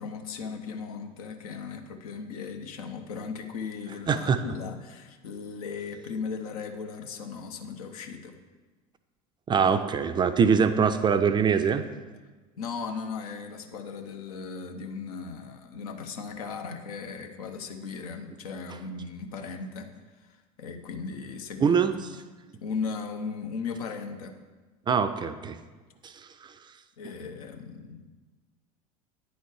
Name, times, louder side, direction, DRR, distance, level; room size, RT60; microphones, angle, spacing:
voice 1, 0.0-8.4 12.6-19.9 20.2-20.3 20.6-21.8 22.6-24.4 27.0-28.0, left 5 dB, 70° left, 6 dB, 0.7 m, -37 dB
voice 2, 4.1-4.4 9.5-11.8 21.6-21.9 24.9-25.6 26.0-26.5, right 6 dB, 25° right, 10 dB, 0.4 m, -23 dB
9.3 x 4.2 x 4.7 m, 1.3 s
figure-of-eight pair, 70°, 19 cm